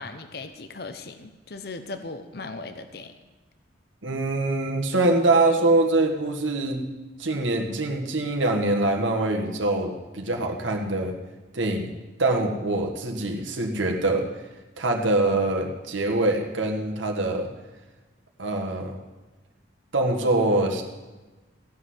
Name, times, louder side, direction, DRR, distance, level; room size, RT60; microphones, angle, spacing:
voice 1, 0.0-3.1, left 3 dB, 55° left, 9 dB, 0.8 m, -38 dB
voice 2, 4.0-6.8 7.2-11.1 11.5-11.9 12.2-14.3 14.8-17.5 18.4-18.9 19.9-20.8, right 2 dB, 85° right, 2 dB, 1.7 m, -24 dB
16.0 x 6.4 x 9.6 m, 1.2 s
head